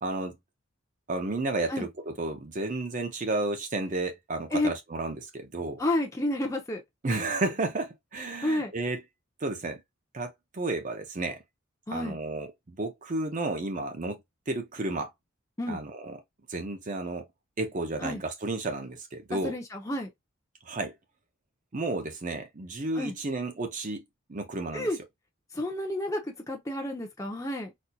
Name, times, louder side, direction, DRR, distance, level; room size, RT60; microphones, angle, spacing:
voice 1, 0.0-0.4 1.1-5.8 7.0-9.0 9.4-9.8 10.1-11.4 11.9-14.2 14.5-15.1 15.7-16.2 16.5-17.3 17.6-19.5 20.7-20.9 21.7-24.0 24.3-24.9, right 2 dB, 40° right, 0.6 m, -32 dB
voice 2, 5.8-6.8 8.4-8.7 11.9-12.2 15.6-15.8 18.0-18.2 19.3-20.1 23.0-23.1 24.7-25.0 25.5-27.7, left 1 dB, 15° left, 0.7 m, -30 dB
4.2 x 2.6 x 2.3 m
head